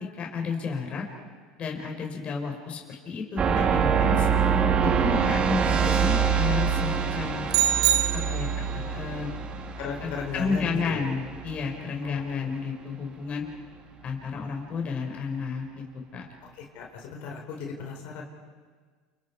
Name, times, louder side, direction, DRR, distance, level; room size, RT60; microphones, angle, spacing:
voice 1, 0.2-1.0 1.6-4.3 4.8-7.5 8.3-9.3 10.0-13.4 14.0-15.8 16.1-16.3, left 5 dB, 35° left, 1 dB, 4.6 m, -32 dB
sound 1, 3.4-11.9, right 6 dB, 35° right, 2.2 m, -25 dB
sound 2, 7.5-8.8, right 11 dB, 70° right, 1.7 m, -24 dB
voice 2, 9.8-11.0 12.0-12.6 16.4-18.2, left 5 dB, 65° left, 1 dB, 4.7 m, -37 dB
30.0 x 28.5 x 4.8 m, 1.5 s
supercardioid pair, 110°, 3 cm